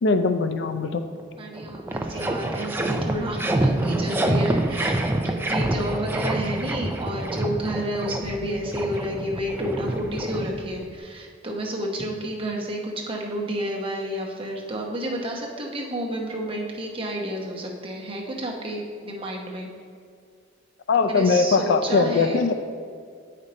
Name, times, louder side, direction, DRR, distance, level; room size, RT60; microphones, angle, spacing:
voice 1, 0.0-1.0 20.9-22.6, left 4 dB, 60° left, 8 dB, 0.4 m, -21 dB
sound 1, 1.2-1.3 1.6-11.0, right 1 dB, 10° right, 0.4 m, -27 dB
voice 2, 1.4-19.7 21.1-22.5, right 1 dB, 25° right, -1 dB, 0.9 m, -30 dB
8.2 x 5.1 x 4.2 m, 2.2 s
head